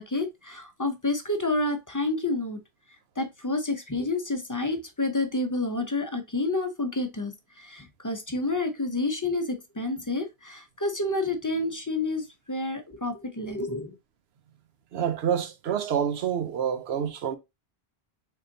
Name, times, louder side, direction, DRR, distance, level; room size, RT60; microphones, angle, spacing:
voice 1, 0.0-2.6 3.2-14.0, left 2 dB, 25° left, 0.5 m, -29 dB
voice 2, 14.9-17.4, right 8 dB, 80° right, 0.9 m, -27 dB
3.9 x 3.7 x 2.6 m
omnidirectional pair, 1.1 m